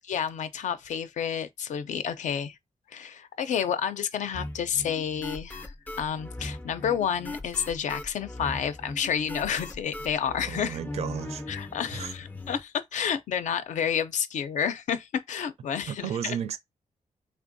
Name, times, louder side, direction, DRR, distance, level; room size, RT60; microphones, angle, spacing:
voice 1, 0.1-2.6 2.9-10.8 11.5-16.4, left 8 dB, 70° left, 0.5 m, -30 dB
sound 1, 4.3-12.6, left 2 dB, 15° left, 0.4 m, -39 dB
voice 2, 10.5-11.4 11.9-12.1 15.9-16.6, right 9 dB, 55° right, 0.4 m, -33 dB
3.4 x 3.3 x 2.6 m
wide cardioid pair, 170°, 13 cm